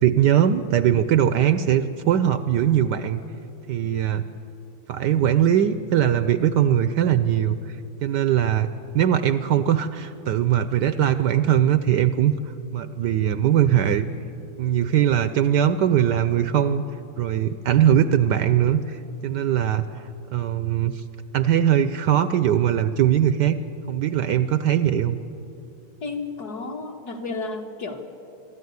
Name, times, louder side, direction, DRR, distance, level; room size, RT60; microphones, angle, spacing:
voice 1, 0.0-3.2 3.7-4.2 4.9-7.6 8.0-8.7 8.9-12.3 12.7-14.1 14.6-16.8 17.2-19.8 20.3-21.0 21.3-23.6 23.9-25.2, right 10 dB, 70° right, 12 dB, 1.1 m, -20 dB
voice 2, 26.0-28.0, left 3 dB, 50° left, 2 dB, 2.1 m, -32 dB
24.0 x 13.5 x 9.5 m, 2.8 s
omnidirectional pair, 2.2 m